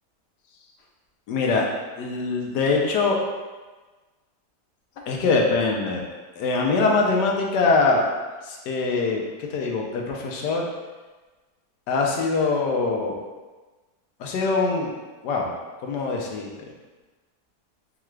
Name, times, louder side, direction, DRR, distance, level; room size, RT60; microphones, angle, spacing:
voice 1, 1.3-1.6 2.0-3.2 5.1-6.0 6.4-8.0 8.5-10.6 11.9-13.2 14.2-14.9 15.2-15.5 15.8-16.5, left 3 dB, 80° left, 0 dB, 1.3 m, -23 dB
4.6 x 2.3 x 3.1 m, 1.3 s
omnidirectional pair, 1.8 m